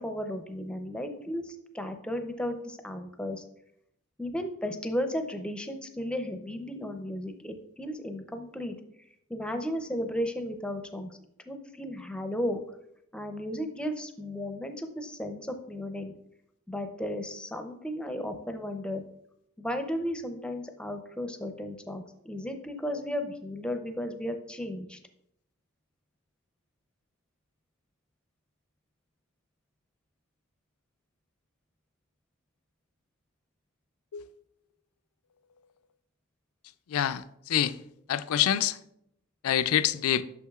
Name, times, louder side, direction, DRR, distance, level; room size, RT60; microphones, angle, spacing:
voice 1, 0.0-3.4 4.2-8.8 9.3-11.2 11.5-12.6 13.1-16.1 16.7-19.0 19.6-25.0, equal, 5° left, 0.5 m, -34 dB
voice 2, 36.9-37.7 38.1-38.8 39.4-40.2, left 10 dB, 90° left, 0.4 m, -26 dB
8.4 x 6.2 x 2.3 m
head